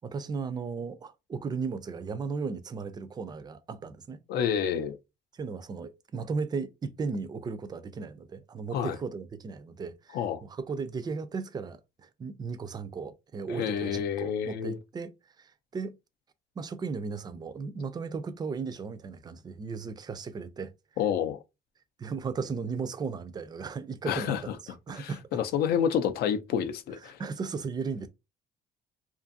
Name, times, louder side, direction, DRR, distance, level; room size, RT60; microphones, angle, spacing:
voice 1, 0.0-4.2 5.3-15.1 15.4-16.0 16.6-20.7 22.0-25.3 27.1-28.1, right 5 dB, 25° right, 0.4 m, -36 dB
voice 2, 4.3-5.0 8.7-9.0 10.1-10.4 13.5-14.8 21.0-21.4 24.1-24.4 25.0-27.2, left 8 dB, 70° left, 0.4 m, -29 dB
2.6 x 2.5 x 2.5 m
cardioid pair, 110°, 17 cm